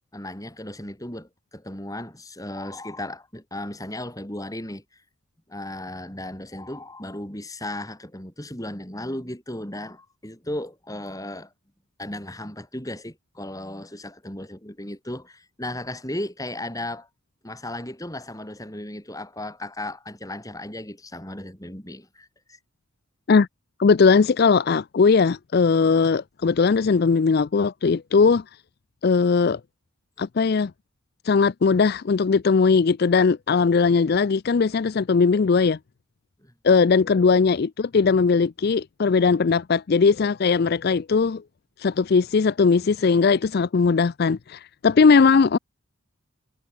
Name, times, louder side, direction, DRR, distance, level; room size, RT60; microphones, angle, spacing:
voice 1, 0.1-4.8 5.5-11.5 12.0-17.1 17.4-22.6 36.4-36.5, left 1 dB, 15° left, 4.3 m, -35 dB
voice 2, 23.8-28.4 29.0-29.6 30.2-30.7 31.2-35.8 36.6-41.4 41.8-45.6, left 5 dB, 45° left, 0.4 m, -19 dB
head